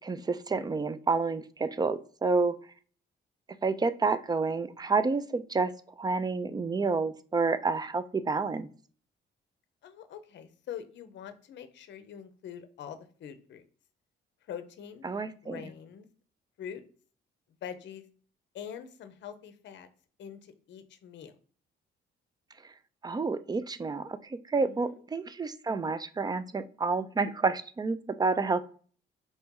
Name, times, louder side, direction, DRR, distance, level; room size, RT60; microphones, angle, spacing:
voice 1, 0.0-2.6 3.6-5.7 6.0-8.7 15.0-15.6 23.0-28.6, right 4 dB, 20° right, 13 dB, 0.4 m, -29 dB
voice 2, 9.8-13.6 14.5-15.1 15.4-16.1 16.6-16.8 17.6-18.0 18.5-19.9 20.2-21.3 24.6-25.0, left 8 dB, 65° left, 11 dB, 0.6 m, -44 dB
4.2 x 2.9 x 3.6 m, 0.43 s
cardioid pair, 90°, 20 cm